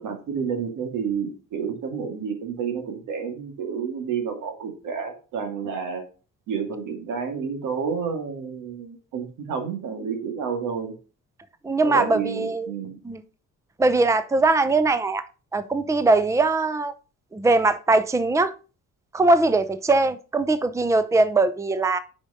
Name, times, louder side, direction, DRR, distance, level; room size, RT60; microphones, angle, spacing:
voice 1, 0.0-6.0 6.5-10.9 11.8-13.0, right 6 dB, 85° right, 2.0 m, -30 dB
voice 2, 11.6-12.7 13.0-13.2 13.8-15.3 15.5-16.9 17.3-18.5 19.1-22.0, right 3 dB, 10° right, 0.6 m, -21 dB
6.2 x 5.2 x 5.4 m
cardioid pair, 90°, 30 cm